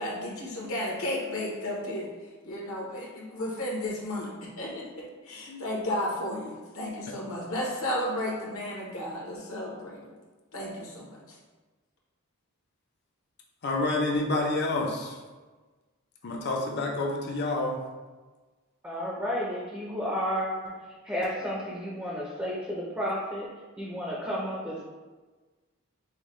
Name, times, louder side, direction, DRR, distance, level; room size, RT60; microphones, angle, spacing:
voice 1, 0.0-2.1 2.4-10.1 10.5-11.4, left 1 dB, 70° left, -3 dB, 1.1 m, -33 dB
voice 2, 13.6-15.2 16.2-17.8, left 2 dB, 50° left, 0 dB, 0.6 m, -28 dB
voice 3, 18.8-20.5 21.0-23.5 23.8-24.8, equal, 10° right, -6 dB, 0.6 m, -32 dB
5.5 x 2.2 x 3.1 m, 1.3 s
head